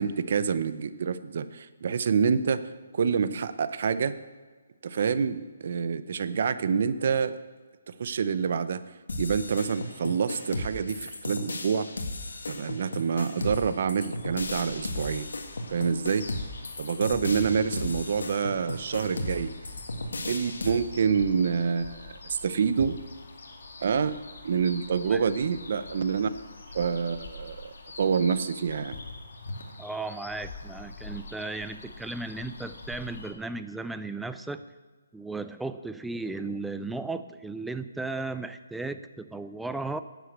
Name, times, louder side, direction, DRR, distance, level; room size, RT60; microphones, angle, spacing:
voice 1, 0.0-2.6 2.9-4.2 4.8-7.4 7.9-8.8 9.2-11.9 12.5-15.3 15.7-16.2 16.8-19.5 20.3-23.0 23.8-24.2 24.4-26.3 26.7-29.0, right 6 dB, 50° right, 14 dB, 0.7 m, -27 dB
sound 1, 9.1-20.7, left 2 dB, 85° left, 1.9 m, -35 dB
sound 2, 14.1-33.3, left 3 dB, 65° left, 2.2 m, -44 dB
voice 2, 29.8-34.6 35.1-40.0, right 3 dB, 5° right, 11 dB, 0.4 m, -35 dB
10.0 x 8.2 x 8.0 m, 1.4 s
hypercardioid pair, 165°, 0 cm